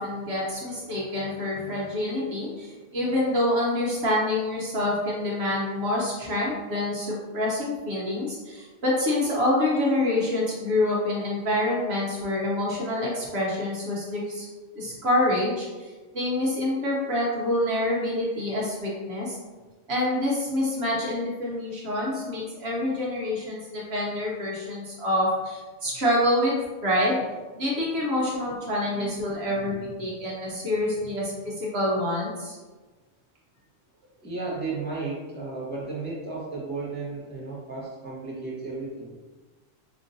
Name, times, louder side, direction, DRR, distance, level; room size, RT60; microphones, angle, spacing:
voice 1, 0.0-14.5 14.8-19.4 19.9-26.6 26.8-27.2 27.6-32.6, left 1 dB, 55° right, -5 dB, 1.0 m, -27 dB
voice 2, 28.9-29.9 30.6-30.7 31.0-31.1 34.2-39.1, right 3 dB, 10° left, -7 dB, 0.7 m, -35 dB
5.1 x 2.6 x 2.6 m, 1.3 s
omnidirectional pair, 1.5 m